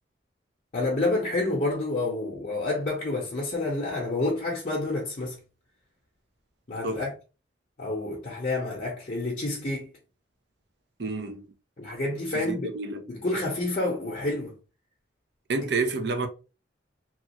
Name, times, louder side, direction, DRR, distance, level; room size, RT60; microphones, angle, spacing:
voice 1, 0.7-5.4 6.7-7.1 7.8-9.9 11.8-12.7 13.1-14.5, left 2 dB, 45° left, 0.7 m, -29 dB
voice 2, 11.0-11.5 12.3-13.0 15.5-16.3, right 3 dB, 65° right, 0.6 m, -29 dB
3.0 x 2.3 x 2.9 m
head